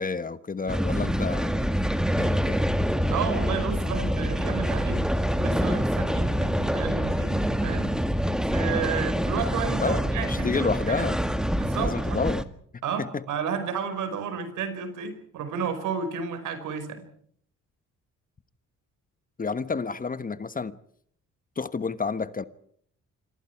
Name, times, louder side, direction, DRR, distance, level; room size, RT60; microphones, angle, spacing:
voice 1, 0.0-1.7 2.2-2.6 9.8-11.2 11.8-12.4 13.0-13.2 19.4-20.7 21.6-22.4, left 4 dB, 30° left, 1.3 m, -30 dB
sound 1, 0.7-12.4, equal, ahead, 1.8 m, -26 dB
voice 2, 3.1-5.0 5.4-7.9 8.5-11.1 11.5-12.2 12.8-17.0, right 6 dB, 85° right, 5.3 m, -32 dB
27.5 x 26.0 x 4.7 m
cardioid pair, 90°, 30 cm